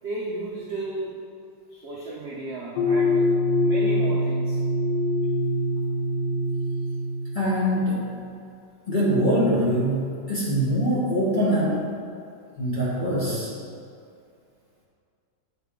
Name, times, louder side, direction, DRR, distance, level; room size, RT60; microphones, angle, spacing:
voice 1, 0.0-1.2 1.7-3.3 3.6-4.6, right 2 dB, 60° right, -5 dB, 0.7 m, -34 dB
sound 1, 2.8-8.0, left 1 dB, 80° left, 1.4 m, -24 dB
voice 2, 7.3-8.0 8.9-11.9 12.6-13.5, equal, 30° left, -8 dB, 1.0 m, -23 dB
8.2 x 4.1 x 3.7 m, 2.4 s
omnidirectional pair, 2.0 m